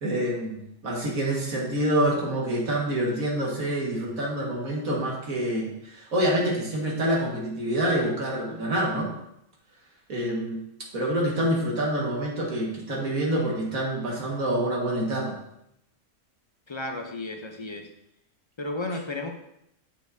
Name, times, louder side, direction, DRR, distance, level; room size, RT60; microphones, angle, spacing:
voice 1, 0.0-9.1 10.1-10.6 10.9-15.4, right 1 dB, 80° right, -3 dB, 2.1 m, -27 dB
voice 2, 16.7-17.9 18.6-19.3, left 2 dB, 40° left, 4 dB, 0.4 m, -33 dB
8.4 x 6.5 x 2.7 m, 0.79 s
omnidirectional pair, 1.4 m